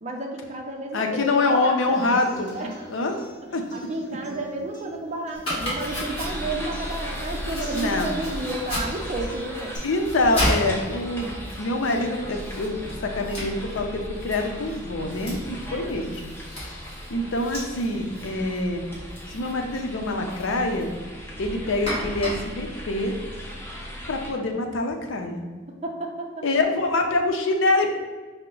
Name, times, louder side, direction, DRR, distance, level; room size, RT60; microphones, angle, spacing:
voice 1, 0.0-2.0 2.5-2.9 3.7-9.7 25.8-26.4, right 2 dB, 35° right, 1 dB, 0.5 m, -31 dB
voice 2, 0.9-2.6 2.9-3.2 3.5-3.6 7.7-8.1 9.8-18.8 19.3-20.9 21.4-23.1 24.1-25.4 26.4-28.0, left 2 dB, 85° left, 3 dB, 0.6 m, -25 dB
Human voice / Acoustic guitar, 1.8-9.8, right 1 dB, 60° left, 1.5 m, -45 dB
Domestic sounds home sounds, 5.3-23.8, equal, 30° left, 1.5 m, -35 dB
sound 1, 5.8-24.3, equal, 10° left, 0.7 m, -37 dB
5.7 x 2.1 x 3.7 m, 1.4 s
head